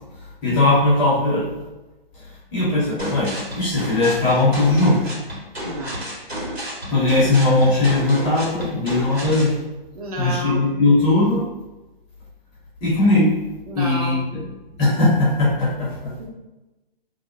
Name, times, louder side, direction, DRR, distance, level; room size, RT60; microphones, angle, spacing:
voice 1, 0.4-1.5 2.5-5.0 6.9-9.5 10.2-11.4 12.8-13.3 13.7-14.4 14.8-15.9, left 2 dB, 15° left, -9 dB, 0.8 m, -18 dB
sound 1, 3.0-9.5, equal, 85° right, 1.4 m, -31 dB
voice 2, 5.6-6.1 9.9-10.6 13.6-14.2 16.2-16.3, right 2 dB, 40° right, -1 dB, 0.6 m, -31 dB
2.7 x 2.0 x 2.7 m, 1.0 s
figure-of-eight pair, 140°, 30 cm